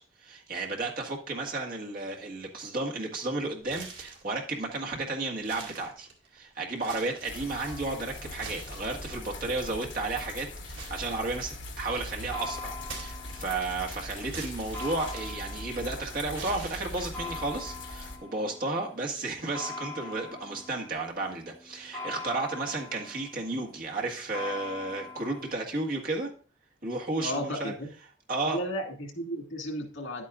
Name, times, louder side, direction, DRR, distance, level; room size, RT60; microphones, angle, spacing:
voice 1, 0.2-26.3 26.8-27.7 28.3-28.6, right 2 dB, 50° right, 0 dB, 1.7 m, -33 dB
sound 1, 3.6-4.3 4.8-4.9 5.4-6.4 6.7-7.4 8.2-9.3 10.8-11.8 12.8-13.7 14.3-15.9 16.3-17.3, right 4 dB, 80° right, 2.2 m, -44 dB
sound 2, 7.2-18.2, left 2 dB, 70° left, 1.3 m, -41 dB
sound 3, 7.5-25.5, left 3 dB, 10° left, 3.4 m, -44 dB
voice 2, 27.2-27.9 28.5-30.2, equal, 90° left, 3 dB, 2.0 m, -34 dB
10.5 x 8.4 x 2.4 m, 0.39 s
head